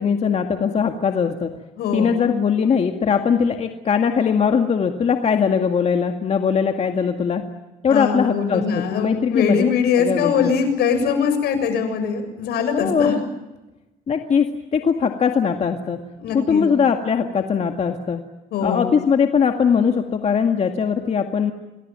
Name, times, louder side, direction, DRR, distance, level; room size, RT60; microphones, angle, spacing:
voice 1, 0.0-1.5 1.9-7.4 7.8-9.7 10.0-10.5 12.7-13.2 14.1-16.0 16.3-18.2 18.6-21.5, left 6 dB, 40° left, 4 dB, 2.1 m, -20 dB
voice 2, 1.8-2.2 7.9-13.1 16.2-16.7 18.5-18.9, left 6 dB, 75° left, 8 dB, 6.9 m, -22 dB
28.0 x 20.5 x 9.0 m, 1.0 s
cardioid pair, 110°, 17 cm